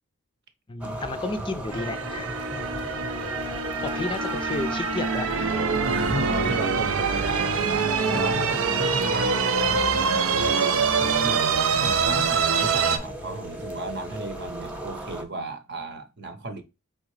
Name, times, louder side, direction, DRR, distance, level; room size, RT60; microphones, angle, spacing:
voice 1, 0.7-2.3 3.4-3.5 3.8-5.6, left 2 dB, 25° left, 0.4 m, -32 dB
sound 1, 0.8-15.2, right 1 dB, 5° right, 0.9 m, -36 dB
sound 2, 1.7-13.0, right 5 dB, 80° right, 0.6 m, -25 dB
voice 2, 5.8-16.6, right 2 dB, 55° right, 0.8 m, -34 dB
4.5 x 3.6 x 3.2 m
head